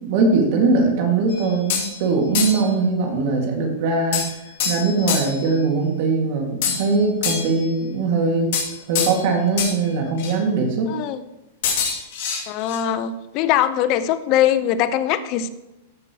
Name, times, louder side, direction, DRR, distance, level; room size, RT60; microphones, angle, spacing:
voice 1, 0.0-8.5 8.9-10.9, right 3 dB, 55° right, 2 dB, 1.8 m, -21 dB
sound 1, 1.3-2.0 2.3-2.7 4.1-5.4 6.6-7.7 8.5-9.3 9.6-9.8 10.2-10.3 11.6-12.8, left 6 dB, 60° left, 2.3 m, -25 dB
voice 2, 10.9-11.2 12.5-15.5, left 11 dB, 45° left, 13 dB, 0.6 m, -21 dB
14.0 x 5.4 x 2.9 m, 0.95 s
hypercardioid pair, 130°, 0 cm